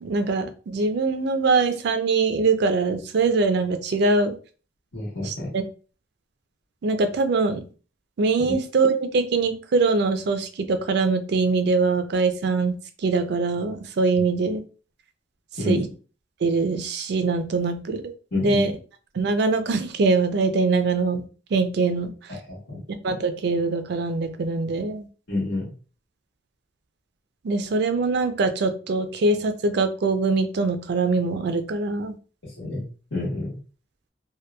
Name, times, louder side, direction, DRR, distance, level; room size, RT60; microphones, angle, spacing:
voice 1, 0.0-4.3 5.2-5.6 6.8-7.6 8.2-12.7 13.0-14.6 15.7-15.9 16.4-18.0 18.4-18.7 19.2-21.2 21.5-22.1 23.0-25.1 27.4-32.1, right 3 dB, 60° right, 8 dB, 0.4 m, -23 dB
voice 2, 4.9-5.5 8.5-8.6 15.6-15.8 18.3-18.7 22.3-22.8 25.3-25.7 32.4-32.8 33.1-33.6, left 2 dB, 85° left, -7 dB, 1.1 m, -29 dB
2.8 x 2.3 x 2.2 m, 0.37 s
head